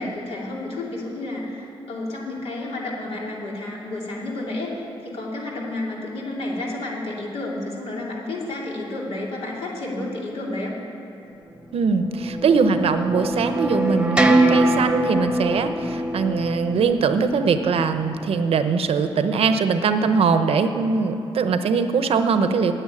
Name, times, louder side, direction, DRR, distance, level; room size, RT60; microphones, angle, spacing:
voice 1, 0.0-10.8, left 2 dB, 85° left, -3 dB, 2.8 m, -31 dB
sound 1, 11.6-18.1, right 1 dB, 10° right, 0.9 m, -24 dB
voice 2, 11.7-22.7, right 5 dB, 75° right, 9 dB, 0.8 m, -21 dB
10.0 x 8.0 x 9.7 m, 3.0 s
cardioid pair, 90°, 10 cm